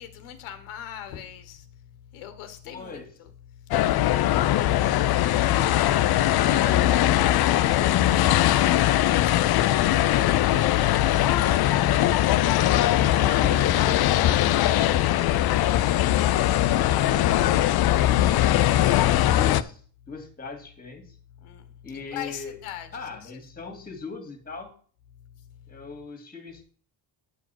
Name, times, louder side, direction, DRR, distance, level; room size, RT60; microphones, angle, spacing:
voice 1, 0.0-1.6 2.1-3.3 11.9-12.5 21.4-21.6 21.9-23.3 23.6-23.7, left 10 dB, 90° left, 1.3 m, -40 dB
voice 2, 2.6-3.1 12.7-18.4 19.0-19.8 20.1-21.1 21.8-22.6 22.9-24.7 25.7-26.6, left 4 dB, 20° left, 2.1 m, -40 dB
sound 1, 3.7-19.6, left 13 dB, 50° left, 0.5 m, -21 dB
9.2 x 4.8 x 5.8 m
cardioid pair, 135°, 48 cm